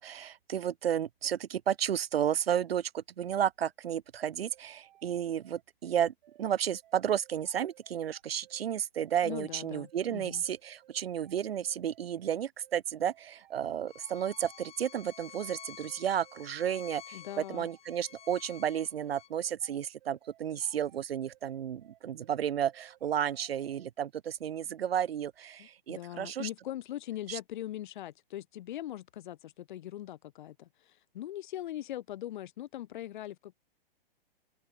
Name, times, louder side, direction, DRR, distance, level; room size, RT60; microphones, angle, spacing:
voice 1, 0.0-26.5 27.3-27.4, right 9 dB, 80° right, 0.5 m, -32 dB
sound 1, 4.5-23.9, right 13 dB, 55° right, 6.6 m, -62 dB
voice 2, 9.2-10.4 17.1-17.7 25.6-33.5, left 13 dB, 55° left, 0.7 m, -41 dB
Bowed string instrument, 13.9-19.3, left 10 dB, 20° left, 5.9 m, -51 dB
hypercardioid pair, 120°, 30 cm